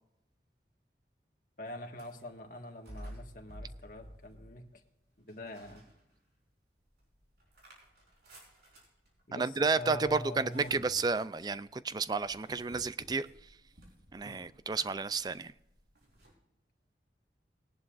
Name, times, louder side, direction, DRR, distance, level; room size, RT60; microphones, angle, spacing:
voice 1, 1.6-4.8 5.2-5.8 9.3-10.8, left 1 dB, 50° left, 1.7 m, -44 dB
sound 1, 1.9-2.3 2.8-4.8 5.3-6.4 6.8-16.3, equal, 65° right, 4.4 m, -53 dB
voice 2, 9.3-13.3 14.1-15.5, right 4 dB, 20° right, 0.3 m, -31 dB
19.5 x 11.0 x 2.5 m
head